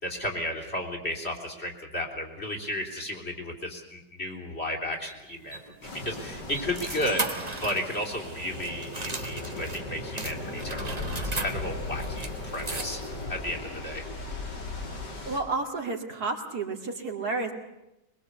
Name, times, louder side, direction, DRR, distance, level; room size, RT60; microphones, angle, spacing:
voice 1, 0.0-5.6 6.0-13.0 13.3-14.4, left 1 dB, 35° left, 0 dB, 3.8 m, -34 dB
sound 1, 5.1-9.8 10.2-13.2, right 3 dB, 25° right, 1.6 m, -37 dB
sound 2, 5.8-15.4, left 2 dB, 90° left, 4.2 m, -37 dB
voice 2, 15.2-17.5, right 3 dB, 65° right, 3 dB, 2.9 m, -31 dB
23.0 x 21.5 x 8.2 m, 0.90 s
omnidirectional pair, 1.8 m